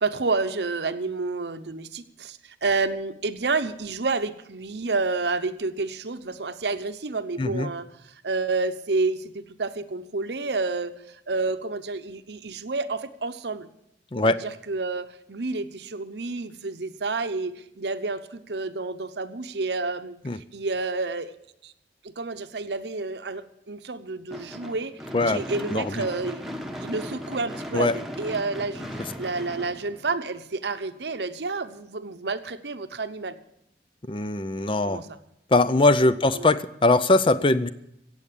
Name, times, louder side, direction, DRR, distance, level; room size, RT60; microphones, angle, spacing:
voice 1, 0.0-7.9 8.2-13.7 14.2-21.3 21.6-21.7 22.0-24.9 25.3-26.5 26.8-33.4 34.8-35.2 36.4-36.5, right 3 dB, 80° right, 10 dB, 0.9 m, -29 dB
voice 2, 7.4-7.7 14.1-14.4 20.2-20.4 25.1-25.4 25.7-26.0 27.7-28.0 34.1-35.0 35.5-37.7, left 2 dB, 30° left, 13 dB, 0.5 m, -21 dB
Gunshot gunfire / Fireworks, 24.3-30.6, equal, ahead, 1.1 m, -37 dB
15.5 x 8.0 x 8.5 m, 0.81 s
head